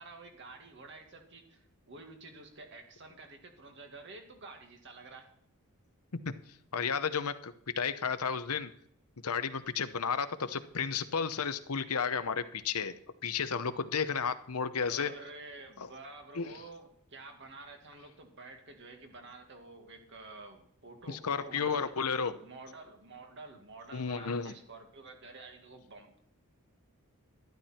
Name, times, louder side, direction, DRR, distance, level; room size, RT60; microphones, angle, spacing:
voice 1, 0.0-5.3 14.8-26.2, right 3 dB, 55° right, 3 dB, 2.1 m, -50 dB
voice 2, 6.7-8.7 9.2-12.9 13.2-15.1 16.4-16.5 21.1-22.3 23.9-24.5, left 6 dB, 85° left, 11 dB, 0.9 m, -32 dB
12.0 x 12.0 x 4.4 m, 0.66 s
head